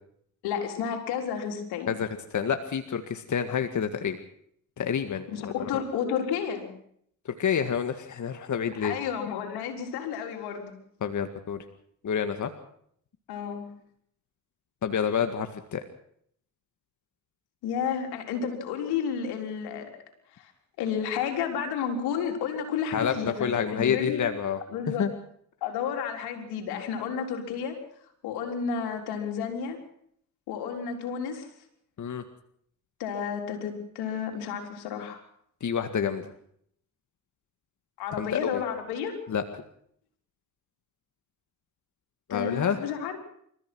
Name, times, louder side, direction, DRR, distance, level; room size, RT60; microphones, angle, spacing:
voice 1, 0.4-1.9 5.3-6.7 8.8-10.8 13.3-13.7 17.6-19.9 20.3-20.5 20.8-24.3 24.7-25.1 25.6-27.8 28.2-29.8 30.5-31.5 33.0-35.2 38.0-39.2 42.3-43.2, left 7 dB, 90° left, 4 dB, 4.1 m, -31 dB
voice 2, 1.9-4.2 4.8-5.5 7.3-8.9 11.0-11.6 12.0-12.5 14.8-15.8 22.9-23.1 23.4-24.6 25.0-25.1 32.0-32.2 35.6-36.3 38.2-38.6 39.3-39.4 42.3-42.8, left 7 dB, 50° left, 7 dB, 1.9 m, -28 dB
29.0 x 14.5 x 6.2 m, 0.66 s
supercardioid pair, 65°, 38 cm